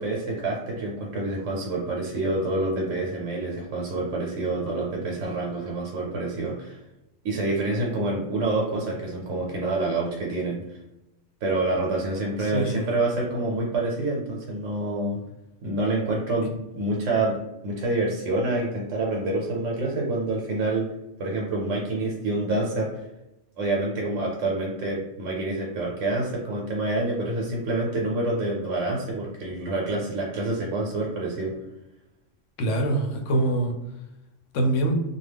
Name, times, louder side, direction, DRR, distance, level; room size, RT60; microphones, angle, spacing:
voice 1, 0.0-6.8 7.2-10.8 11.4-15.2 15.6-17.4 17.6-20.9 21.2-22.9 23.6-31.5, right 2 dB, 75° right, -3 dB, 0.9 m, -27 dB
voice 2, 12.4-12.9 32.6-33.7 34.5-34.9, right 1 dB, 80° left, 2 dB, 0.9 m, -24 dB
2.4 x 2.2 x 3.3 m, 0.91 s
omnidirectional pair, 1.3 m